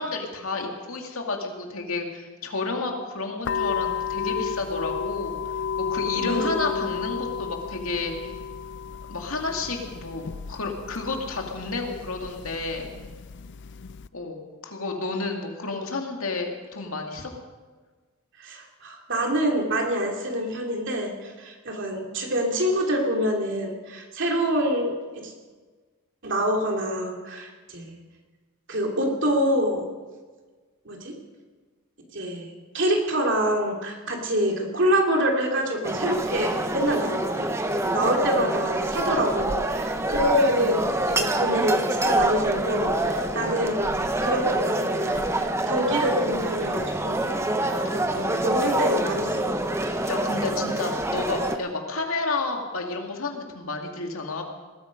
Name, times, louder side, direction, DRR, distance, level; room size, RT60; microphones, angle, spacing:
voice 1, 0.0-5.4 5.8-8.3 9.1-12.9 14.1-17.3 47.8-48.5 49.8-54.4, left 3 dB, 80° left, 2 dB, 2.4 m, -31 dB
sound 1, 3.4-14.1, left 7 dB, 55° left, 0.4 m, -32 dB
voice 2, 6.2-6.8 18.4-25.3 26.2-27.9 28.7-29.9 30.8-31.2 32.1-47.2 47.6-49.6, equal, 60° right, 1 dB, 2.9 m, -26 dB
sound 2, 35.8-51.6, right 2 dB, 15° right, 0.9 m, -26 dB
19.5 x 13.5 x 5.3 m, 1.4 s
head